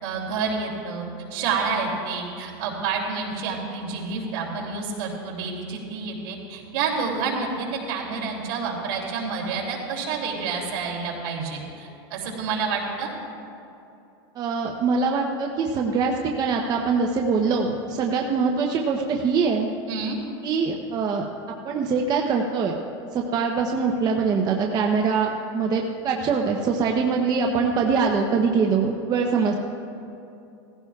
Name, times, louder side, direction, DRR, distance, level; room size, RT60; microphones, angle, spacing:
voice 1, 0.0-1.1 1.3-13.1 19.9-20.2, right 5 dB, 65° right, -2 dB, 2.8 m, -29 dB
voice 2, 14.4-19.7 20.4-21.2 21.6-22.8 23.1-29.6, right 5 dB, 30° right, 1 dB, 0.7 m, -23 dB
18.0 x 15.0 x 2.4 m, 2.7 s
supercardioid pair, 140°, 14 cm